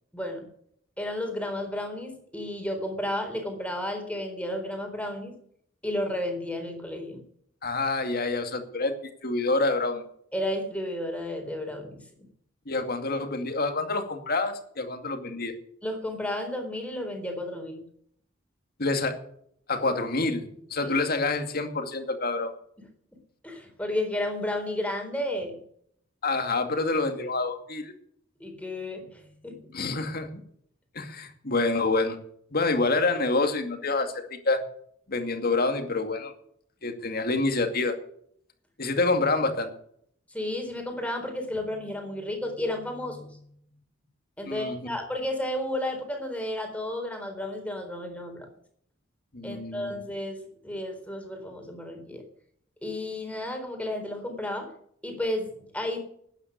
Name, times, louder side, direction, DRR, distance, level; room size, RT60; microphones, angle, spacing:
voice 1, 0.1-0.4 1.0-5.3 5.8-7.2 10.3-12.0 15.8-17.8 20.8-20.9 23.4-25.6 28.4-29.7 40.3-43.5 44.4-48.5 49.4-52.2 52.8-54.7 55.0-56.0, left 1 dB, 5° left, 4 dB, 4.0 m, -32 dB
voice 2, 7.6-8.9 9.2-10.0 12.7-15.5 18.8-19.2 19.7-20.4 20.7-22.5 26.2-27.9 29.7-30.4 30.9-32.2 32.5-34.6 35.1-36.3 36.8-38.0 38.8-39.7 44.5-44.8 49.3-50.0, left 3 dB, 50° left, 6 dB, 2.3 m, -27 dB
12.5 x 9.9 x 8.2 m, 0.65 s
head